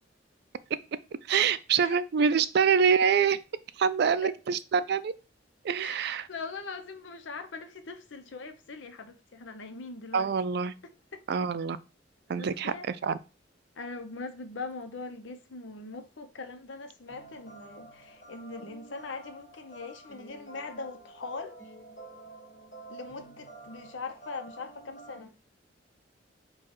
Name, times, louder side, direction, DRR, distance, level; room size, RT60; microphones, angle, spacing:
voice 1, 1.3-3.4 3.8-5.1 5.6-6.3 10.1-10.7 11.3-11.8 12.3-12.7 13.0-13.2, right 6 dB, 60° right, 0.3 m, -25 dB
voice 2, 6.3-10.3 11.1-11.2 12.3-12.9 13.8-21.6 22.9-25.4, left 4 dB, 90° left, 0.7 m, -41 dB
sound 1, 17.1-25.2, right 3 dB, 55° left, 1.4 m, -49 dB
4.7 x 2.3 x 4.3 m
head